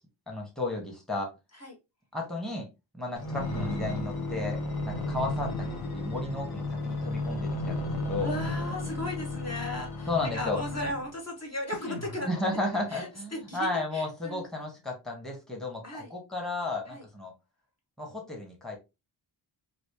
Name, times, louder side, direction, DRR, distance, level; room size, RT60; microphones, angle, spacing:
voice 1, 0.3-1.3 2.1-2.7 2.9-5.7 5.9-8.3 10.1-10.6 12.3-17.3 18.0-18.8, left 2 dB, ahead, 0 dB, 1.2 m, -33 dB
sound 1, 3.2-11.1 11.7-13.0 13.6-13.7, left 2 dB, 55° left, 1.1 m, -34 dB
voice 2, 8.2-12.3 12.9-14.4 15.8-16.1 16.9-17.0, left 1 dB, 35° left, -1 dB, 1.2 m, -36 dB
3.2 x 2.6 x 2.9 m, 0.25 s
cardioid pair, 65°, 45 cm